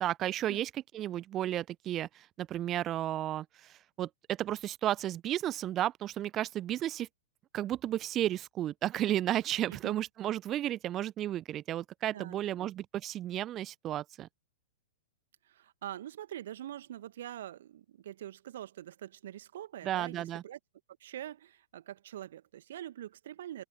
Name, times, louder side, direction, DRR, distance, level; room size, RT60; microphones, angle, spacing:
voice 1, 0.0-7.1 7.5-14.3 19.8-20.4, right 12 dB, 25° right, 0.6 m, -33 dB
voice 2, 12.1-12.7 15.4-20.6 21.0-23.7, right 12 dB, 55° right, 1.5 m, -44 dB
open air
figure-of-eight pair, 105°, 0 cm